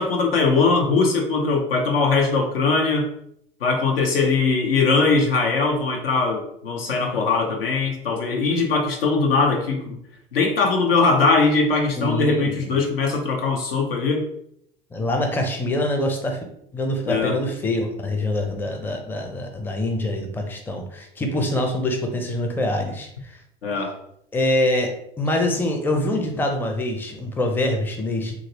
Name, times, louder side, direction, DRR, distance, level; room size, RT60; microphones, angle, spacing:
voice 1, 0.0-3.1 3.6-10.0 10.3-14.2 17.0-17.4 23.6-23.9, left 4 dB, 80° left, 2 dB, 0.7 m, -21 dB
voice 2, 12.0-12.7 14.9-16.4 16.7-23.4 24.3-28.3, left 1 dB, 5° left, 3 dB, 0.5 m, -25 dB
2.9 x 2.5 x 2.9 m, 0.72 s
figure-of-eight pair, 75°, 29 cm